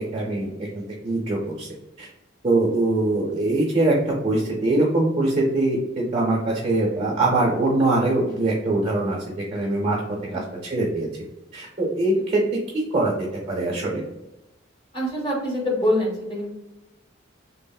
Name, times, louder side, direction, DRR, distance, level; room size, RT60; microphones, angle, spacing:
voice 1, 0.0-1.7 2.0-2.1 2.4-3.9 4.2-10.0 10.3-11.1 11.5-14.0, right 2 dB, 35° right, -3 dB, 0.6 m, -23 dB
voice 2, 14.9-16.5, left 1 dB, 25° left, -3 dB, 0.8 m, -25 dB
3.3 x 2.0 x 2.2 m, 0.95 s
head